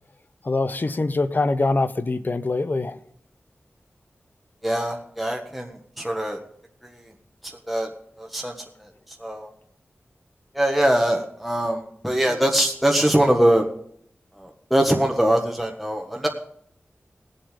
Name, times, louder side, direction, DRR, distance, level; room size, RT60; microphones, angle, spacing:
voice 1, 0.4-3.0, left 3 dB, 50° left, 0.8 m, -23 dB
voice 2, 4.6-6.4 7.4-7.9 8.2-8.5 8.8-8.9 9.2-9.5 10.5-13.7 14.4-16.3, right 1 dB, ahead, 1.5 m, -22 dB
19.5 x 7.9 x 5.3 m
wide cardioid pair, 75°, 4 cm